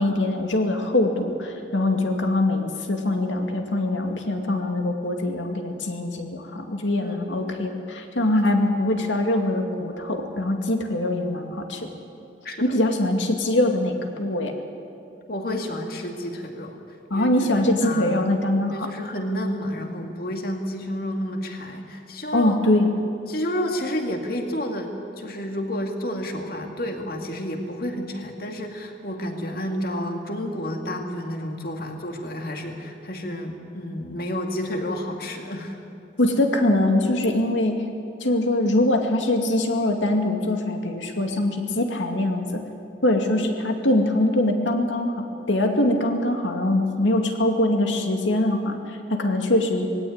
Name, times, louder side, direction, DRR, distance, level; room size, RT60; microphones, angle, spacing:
voice 1, 0.0-11.9 12.6-14.5 17.1-18.9 22.3-22.9 36.2-37.8 38.2-42.6 43.0-49.9, left 1 dB, 85° left, 4 dB, 2.4 m, -23 dB
voice 2, 7.0-7.4 12.4-12.7 15.3-16.8 17.1-18.3 18.7-22.6 23.3-35.8, equal, 50° left, 3 dB, 2.3 m, -30 dB
20.0 x 17.0 x 9.5 m, 2.6 s
head